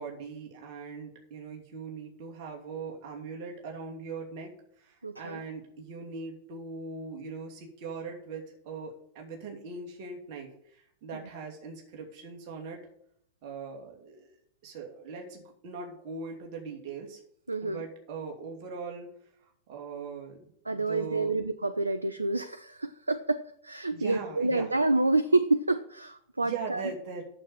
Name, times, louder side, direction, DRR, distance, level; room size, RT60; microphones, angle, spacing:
voice 1, 0.0-4.5 4.8-12.8 13.4-14.3 14.6-17.2 17.6-19.1 19.7-21.3 23.9-24.7 26.4-27.2, right 4 dB, 45° right, 0 dB, 2.7 m, -40 dB
voice 2, 5.0-5.4 17.5-17.8 20.7-26.8, right 2 dB, 80° right, 13 dB, 0.4 m, -28 dB
9.0 x 7.0 x 6.6 m, 0.69 s
figure-of-eight pair, 90°, 0 cm